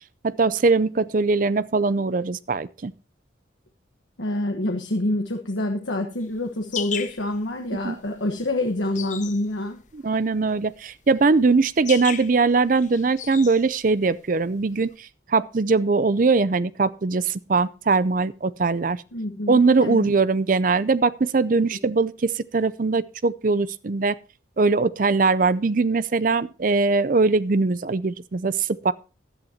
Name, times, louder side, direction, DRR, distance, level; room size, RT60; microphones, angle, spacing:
voice 1, 0.2-2.9 7.8-8.0 9.9-19.0 19.5-24.2 24.6-28.9, right 4 dB, 45° right, 0.5 m, -21 dB
voice 2, 4.2-9.8 19.1-20.1 21.7-21.8, left 1 dB, 80° left, 1.2 m, -27 dB
sound 1, 6.2-14.9, left 9 dB, 40° left, 0.7 m, -36 dB
16.0 x 11.0 x 2.8 m
head